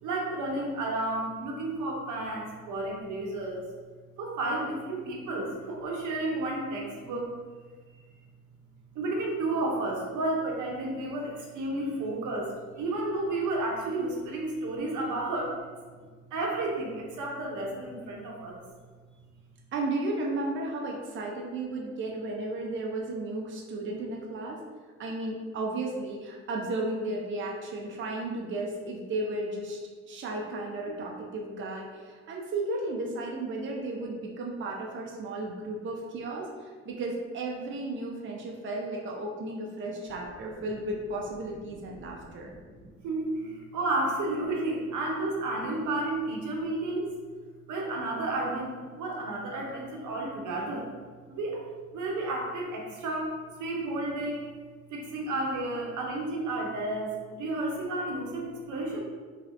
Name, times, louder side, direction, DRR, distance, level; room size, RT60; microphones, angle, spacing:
voice 1, 0.0-3.7 4.2-7.3 7.9-8.0 8.9-15.6 16.3-18.6 42.0-42.5 43.0-47.2 47.7-50.9 51.3-51.6 51.9-53.3 53.6-54.5 54.9-59.0, right 2 dB, 80° right, -1 dB, 0.7 m, -32 dB
voice 2, 19.7-24.6 25.0-29.8 30.1-42.5, right 2 dB, 40° right, -1 dB, 0.5 m, -34 dB
3.2 x 2.7 x 2.5 m, 1.5 s
cardioid pair, 90°, 30 cm